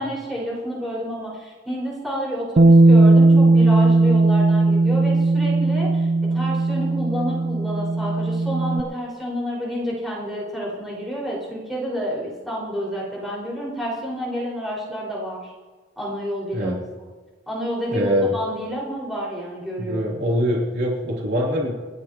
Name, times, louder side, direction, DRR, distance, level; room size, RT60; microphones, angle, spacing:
voice 1, 0.0-6.1 6.3-15.5 16.0-16.8 17.5-20.1, equal, ahead, -6 dB, 5.2 m, -29 dB
Bass guitar, 2.6-8.8, right 2 dB, 45° right, 0.4 m, -17 dB
voice 2, 17.9-18.3 19.8-21.7, equal, 65° right, -4 dB, 3.2 m, -23 dB
29.5 x 10.5 x 3.0 m, 1.3 s
head